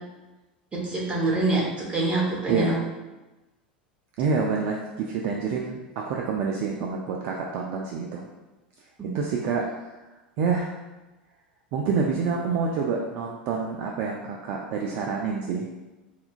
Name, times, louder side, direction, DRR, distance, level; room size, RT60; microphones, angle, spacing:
voice 1, 0.7-2.7 9.0-9.2, right 2 dB, 25° right, -4 dB, 1.0 m, -26 dB
voice 2, 4.2-8.3 9.1-9.7 10.4-10.8 11.7-15.7, right 5 dB, 50° right, 0 dB, 0.3 m, -27 dB
4.3 x 2.4 x 2.4 m, 1.1 s
figure-of-eight pair, 80°, 5 cm